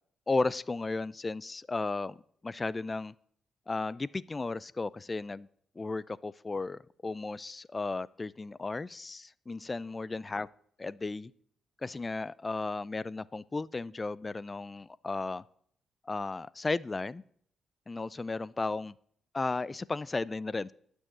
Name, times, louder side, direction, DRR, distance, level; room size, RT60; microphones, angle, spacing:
voice 1, 0.3-2.2 2.4-3.1 3.7-5.5 5.8-10.5 10.8-11.3 11.8-15.4 16.1-17.2 17.9-18.9 19.3-20.7, left 3 dB, 30° left, 21 dB, 0.5 m, -34 dB
12.0 x 6.4 x 9.3 m, 0.63 s
cardioid pair, 65°, 0 cm